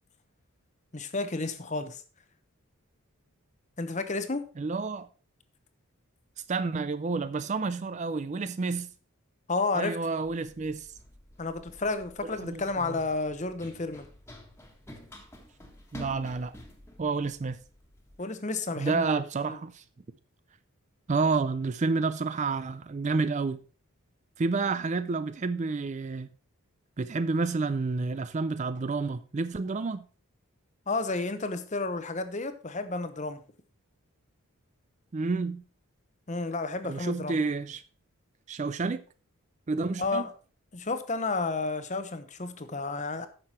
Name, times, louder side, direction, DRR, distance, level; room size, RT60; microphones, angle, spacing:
voice 1, 0.9-2.0 3.8-4.5 9.5-10.0 11.4-14.1 18.2-19.2 19.5-19.6 30.9-33.4 36.3-37.4 40.0-40.3 40.7-43.3, left 3 dB, 30° left, 0.9 m, -31 dB
voice 2, 4.6-5.1 6.5-8.9 9.7-10.9 12.4-12.6 12.9-13.0 15.9-16.5 17.0-17.6 18.8-19.8 21.1-23.6 24.4-26.3 27.0-30.0 35.1-35.6 36.9-37.8 38.5-39.0 39.7-40.2, right 4 dB, 30° right, 0.4 m, -29 dB
Run, 10.2-18.2, left 1 dB, 10° left, 1.5 m, -50 dB
9.8 x 6.7 x 4.3 m
head